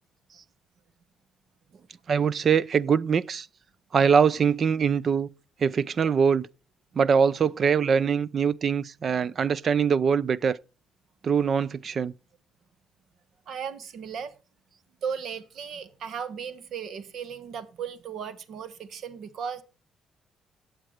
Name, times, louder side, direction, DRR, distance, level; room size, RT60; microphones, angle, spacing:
voice 1, 2.1-3.5 3.9-5.3 5.6-6.5 7.0-10.6 11.2-12.1, right 6 dB, 50° right, 0.5 m, -23 dB
voice 2, 13.5-14.3 15.0-19.6, right 7 dB, 70° right, 1.2 m, -36 dB
11.5 x 8.0 x 4.7 m
cardioid pair, 90°, 0 cm